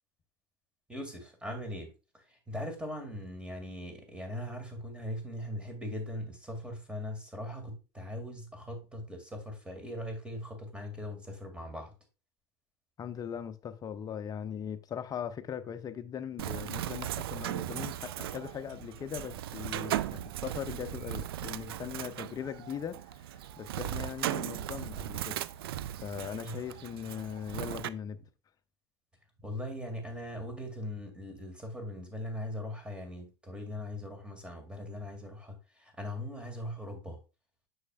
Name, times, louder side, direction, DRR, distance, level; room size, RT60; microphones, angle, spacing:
voice 1, 0.9-11.9 26.3-26.6 29.4-37.2, left 1 dB, 10° right, 2.1 m, -40 dB
voice 2, 13.0-23.0 23.6-25.4 26.0-28.2, left 8 dB, 30° left, 0.6 m, -39 dB
Bird, 16.4-27.9, right 12 dB, 70° right, 0.4 m, -37 dB
6.4 x 6.3 x 2.3 m
hypercardioid pair, 85°, 13 cm